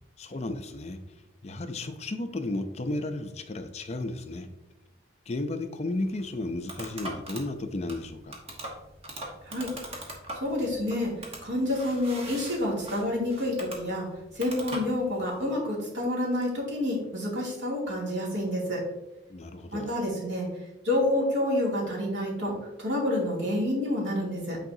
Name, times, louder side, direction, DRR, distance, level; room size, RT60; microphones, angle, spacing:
voice 1, 0.2-1.0 1.4-4.5 5.3-8.4 19.3-20.0, left 2 dB, 35° left, 8 dB, 0.4 m, -33 dB
sound 1, 5.9-15.4, right 1 dB, 30° right, 1.2 m, -42 dB
voice 2, 10.4-11.1 11.4-14.1 14.4-18.8 19.7-20.5 20.8-24.6, left 1 dB, 70° right, -3 dB, 2.5 m, -28 dB
9.0 x 4.8 x 2.7 m, 0.92 s
head